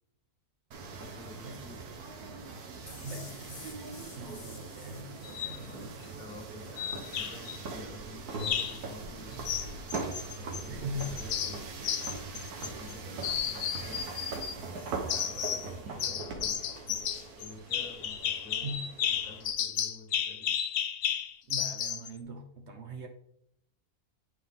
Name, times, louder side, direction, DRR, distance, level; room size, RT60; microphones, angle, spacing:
sound 1, 0.7-19.5, right 4 dB, 80° right, 1.5 m, -41 dB
voice 1, 1.0-2.0 5.4-9.6 10.3-14.1 15.0-17.0 17.4-20.6, left 3 dB, 65° left, 2 dB, 1.8 m, -50 dB
sound 2, 2.9-5.9, left 4 dB, 35° left, 0.5 m, -51 dB
voice 2, 3.0-3.8 4.1-5.9 10.7-11.2 18.6-18.9 21.4-23.1, equal, 55° right, 3 dB, 0.9 m, -41 dB
sound 3, 5.2-5.6 6.8-7.6 8.4-8.8 9.4-10.7 11.0-12.9 13.2-14.6 15.1-15.7 16.0-22.1, left 9 dB, 80° left, 0.5 m, -33 dB
9.3 x 4.8 x 3.5 m, 0.74 s
omnidirectional pair, 1.6 m